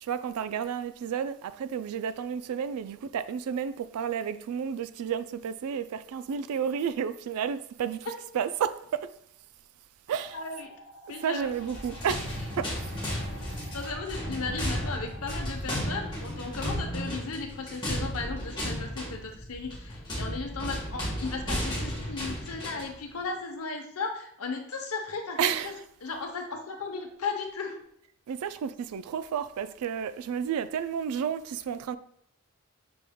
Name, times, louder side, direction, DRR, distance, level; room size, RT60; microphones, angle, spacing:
voice 1, 0.0-9.0 10.1-10.4 11.2-12.3 12.6-12.7 13.8-13.9 25.4-25.8 28.3-32.0, right 7 dB, 90° right, 0.3 m, -31 dB
sound 1, 10.1-15.5, equal, 50° right, 1.7 m, -51 dB
voice 2, 10.3-10.7 11.1-11.5 13.7-25.8 26.0-27.8, left 4 dB, 80° left, 0.8 m, -36 dB
sound 2, 11.5-23.0, equal, 20° left, 1.3 m, -34 dB
5.9 x 3.5 x 2.2 m
head